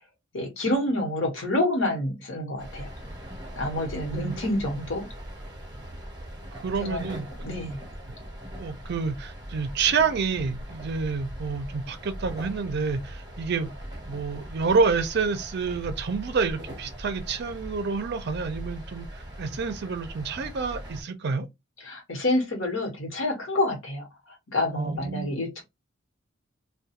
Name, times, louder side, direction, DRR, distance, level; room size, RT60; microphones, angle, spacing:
voice 1, 0.3-2.9 3.5-5.1 6.8-7.1 7.4-7.8 21.8-24.1 24.5-25.6, left 1 dB, 65° left, 1.0 m, -28 dB
sound 1, 2.6-21.0, equal, 20° right, 0.7 m, -40 dB
voice 2, 6.6-7.3 8.6-13.7 14.1-21.5 24.7-25.3, right 5 dB, 55° right, 0.5 m, -28 dB
2.3 x 2.2 x 2.7 m
head